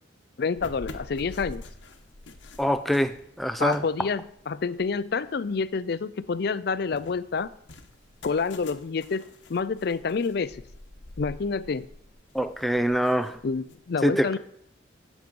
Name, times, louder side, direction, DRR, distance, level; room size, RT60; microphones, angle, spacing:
voice 1, 0.4-1.6 3.6-7.5 8.2-10.6 11.2-11.9 13.4-14.4, left 5 dB, 55° left, 16 dB, 0.4 m, -28 dB
sound 1, 0.6-5.7 6.1-13.7, left 2 dB, 75° left, 1.0 m, -46 dB
voice 2, 2.6-3.8 12.3-13.4 14.0-14.4, equal, ahead, 9 dB, 0.4 m, -25 dB
10.5 x 7.4 x 5.3 m, 0.73 s
head